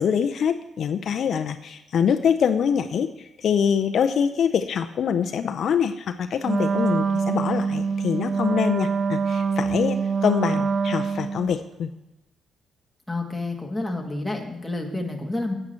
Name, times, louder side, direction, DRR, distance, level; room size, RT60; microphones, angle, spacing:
voice 1, 0.0-11.9, left 7 dB, 60° left, 8 dB, 0.5 m, -24 dB
Wind instrument woodwind instrument, 6.4-11.6, right 5 dB, 45° right, 0.6 m, -24 dB
voice 2, 13.1-15.5, left 2 dB, 5° left, 1 dB, 1.7 m, -29 dB
8.8 x 8.7 x 4.4 m, 0.99 s
cardioid pair, 90°, 0 cm